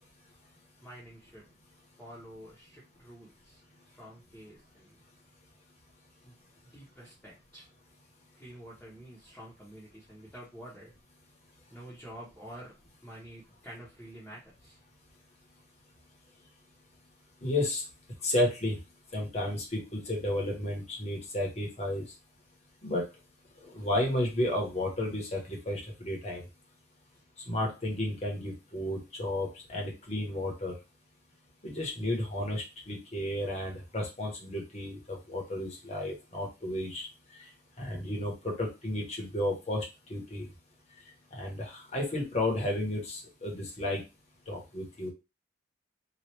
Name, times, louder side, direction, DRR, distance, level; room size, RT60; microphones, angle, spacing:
voice 1, 0.8-1.5 2.0-3.6 3.9-4.9 6.2-6.3 6.6-7.7 8.4-10.9 11.7-12.7 13.0-14.8, right 1 dB, 5° left, -8 dB, 0.9 m, -48 dB
voice 2, 17.4-17.8 18.2-18.8 19.1-22.0 22.8-23.0 23.7-26.4 27.5-30.7 31.6-37.1 37.8-39.8 40.1-40.4 41.3-44.0 44.5-45.1, left 1 dB, 35° left, 0 dB, 1.0 m, -32 dB
2.9 x 2.5 x 3.2 m, 0.27 s
head